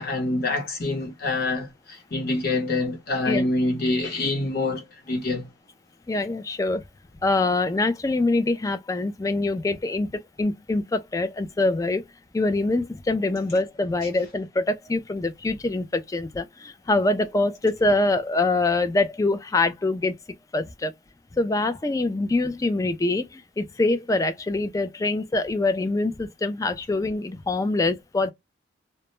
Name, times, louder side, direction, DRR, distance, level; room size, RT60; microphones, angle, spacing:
voice 1, 0.0-5.5, left 2 dB, 55° left, 0.8 m, -26 dB
voice 2, 6.1-6.8 7.2-12.0 12.3-20.1 20.5-20.9 21.4-28.3, left 2 dB, 20° left, 0.3 m, -24 dB
2.2 x 2.0 x 2.9 m
head